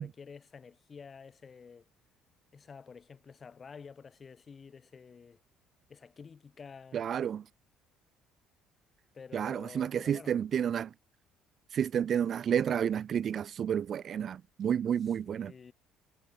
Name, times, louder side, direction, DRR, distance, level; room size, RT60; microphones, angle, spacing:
voice 1, 0.0-1.9 2.5-5.4 5.9-7.0 9.1-10.3 15.3-15.7, left 5 dB, 40° left, 3.6 m, -50 dB
voice 2, 6.9-7.4 9.3-10.9 11.7-15.5, right 8 dB, 50° right, 0.6 m, -30 dB
hypercardioid pair, 60°, 0 cm